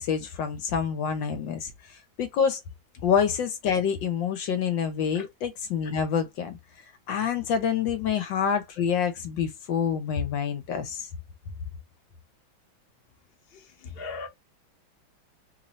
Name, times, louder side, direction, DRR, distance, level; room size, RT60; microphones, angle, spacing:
voice 1, 0.0-2.6 3.0-6.6 7.1-11.1, left 7 dB, 70° left, 1.4 m, -27 dB
voice 2, 13.5-14.3, left 4 dB, 40° left, 1.0 m, -38 dB
3.4 x 2.7 x 3.0 m
omnidirectional pair, 2.2 m